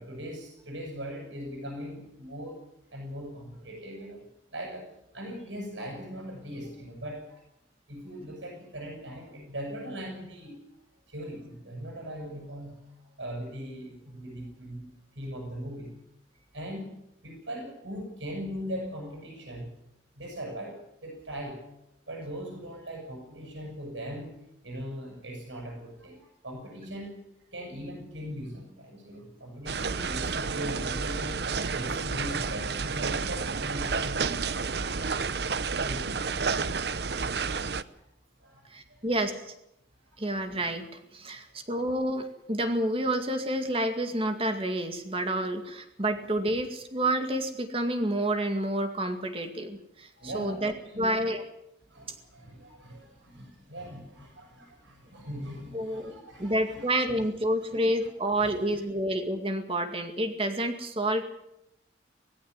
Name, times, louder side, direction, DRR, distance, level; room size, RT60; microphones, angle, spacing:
voice 1, 0.0-2.6 2.9-7.4 7.9-10.6 11.1-16.0 16.5-19.7 20.1-21.7 22.1-27.3 27.5-31.4 31.7-34.3 35.7-36.3 37.1-38.1 38.4-39.1 40.1-40.2 41.3-41.4 50.1-50.6 50.9-51.3 51.9-56.9 57.6-58.1 58.4-58.6, equal, 80° right, 0 dB, 7.7 m, -40 dB
sound 1, 29.7-37.8, right 5 dB, 60° right, 0.8 m, -30 dB
voice 2, 38.7-39.4 40.2-51.4 55.7-56.1 56.4-61.2, right 1 dB, 30° right, 6 dB, 2.2 m, -29 dB
19.0 x 16.0 x 9.9 m, 0.81 s
head